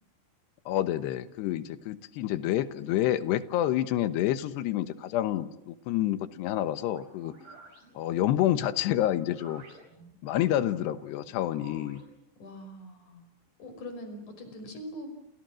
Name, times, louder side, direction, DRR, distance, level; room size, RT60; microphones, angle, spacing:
voice 1, 0.7-7.3 8.0-9.6 10.2-12.0, left 12 dB, 85° left, 13 dB, 3.3 m, -28 dB
sound 1, 6.8-12.1, right 2 dB, 55° right, 6.6 m, -53 dB
voice 2, 12.4-13.2 13.6-15.1, equal, 45° left, 7 dB, 6.7 m, -42 dB
30.0 x 28.0 x 6.3 m, 0.81 s
omnidirectional pair, 4.7 m